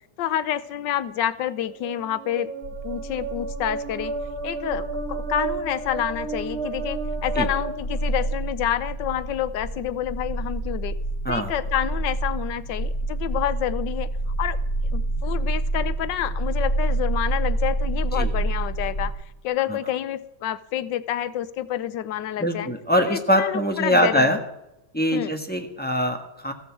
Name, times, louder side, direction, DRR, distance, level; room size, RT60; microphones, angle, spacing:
voice 1, 0.2-2.5 2.8-4.1 4.4-10.9 11.3-14.1 14.4-14.6 14.9-19.1 19.4-22.7 23.1-24.4 25.1-25.3, left 11 dB, 85° left, 14 dB, 1.4 m, -28 dB
sound 1, 1.7-8.5, right 4 dB, 40° right, 2.1 m, -33 dB
sound 2, 2.6-19.1, right 2 dB, 45° left, 3.0 m, -28 dB
voice 2, 22.4-24.4 24.9-26.5, equal, 5° left, 3 dB, 1.2 m, -23 dB
15.0 x 13.5 x 4.7 m, 0.88 s
omnidirectional pair, 1.9 m